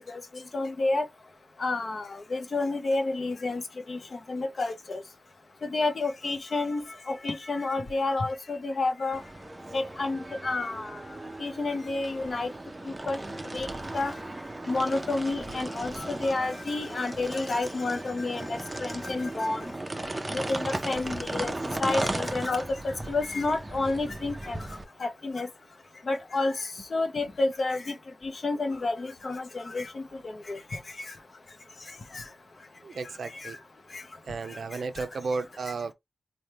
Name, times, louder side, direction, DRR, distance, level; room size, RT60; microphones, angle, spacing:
voice 1, 0.5-1.0 1.6-3.6 3.9-5.0 5.6-9.2 9.7-11.0 11.4-12.5 12.8-13.2 13.5-13.7 13.9-14.1 14.7-19.7 20.3-21.5 21.8-24.6 25.0-25.5 26.1-27.9 28.2-30.0 30.5-30.8 32.1-32.2 33.4-33.5 33.9-34.0 34.5-34.6 35.0-35.1, left 3 dB, 45° left, 0.6 m, -30 dB
sound 1, 9.1-24.8, right 2 dB, 20° right, 0.5 m, -36 dB
voice 2, 32.8-33.6 34.3-35.9, right 4 dB, 70° right, 0.4 m, -33 dB
4.2 x 2.1 x 3.2 m
wide cardioid pair, 125°, 0 cm